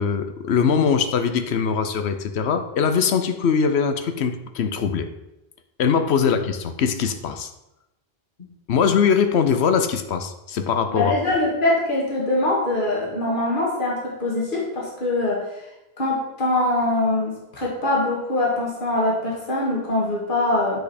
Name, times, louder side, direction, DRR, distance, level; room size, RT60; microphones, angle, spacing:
voice 1, 0.0-5.1 5.8-7.5 8.7-11.1, left 6 dB, 85° left, 8 dB, 1.0 m, -21 dB
voice 2, 10.9-15.5 16.0-20.8, left 2 dB, 55° left, -4 dB, 2.1 m, -23 dB
9.3 x 5.2 x 4.2 m, 0.93 s
omnidirectional pair, 1.1 m